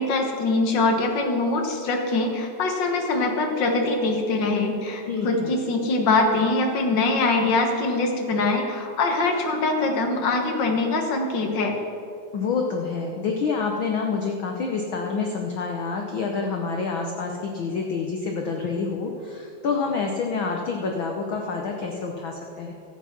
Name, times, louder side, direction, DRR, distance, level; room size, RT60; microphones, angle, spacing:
voice 1, 0.0-11.7, left 3 dB, 50° left, 3 dB, 1.5 m, -23 dB
voice 2, 5.1-5.5 12.3-22.7, left 4 dB, 85° left, 2 dB, 1.1 m, -27 dB
13.5 x 8.3 x 5.9 m, 2.7 s
omnidirectional pair, 3.5 m